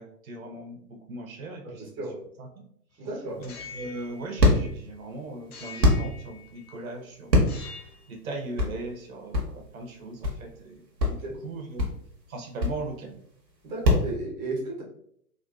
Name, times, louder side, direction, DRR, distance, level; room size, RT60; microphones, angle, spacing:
voice 1, 0.0-1.8 2.4-2.6 3.4-11.8 12.3-13.2, right 2 dB, 55° right, 3 dB, 0.7 m, -39 dB
voice 2, 1.6-2.2 3.0-3.4 11.2-11.3 13.6-14.8, right 2 dB, 15° right, -4 dB, 0.6 m, -34 dB
sound 1, 3.3-5.0 5.5-6.8 7.4-8.1, left 5 dB, 65° left, 0.7 m, -45 dB
sound 2, 3.3-14.1, left 1 dB, 85° right, 1.0 m, -26 dB
3.7 x 2.4 x 2.3 m, 0.66 s
figure-of-eight pair, 110°, 49 cm